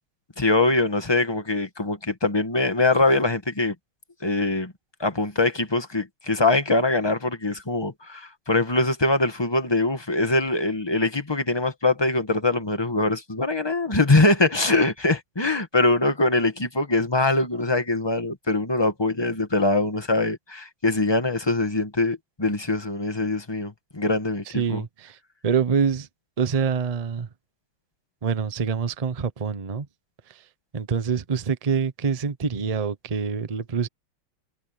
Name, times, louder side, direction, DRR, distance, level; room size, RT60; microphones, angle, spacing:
voice 1, 0.4-3.8 4.2-4.7 5.0-24.8, left 2 dB, 15° left, 1.7 m, -23 dB
voice 2, 24.5-25.2 25.4-26.1 26.4-27.3 28.2-29.9 30.3-30.4 30.7-33.9, right 6 dB, 60° right, 0.3 m, -25 dB
omnidirectional pair, 2.3 m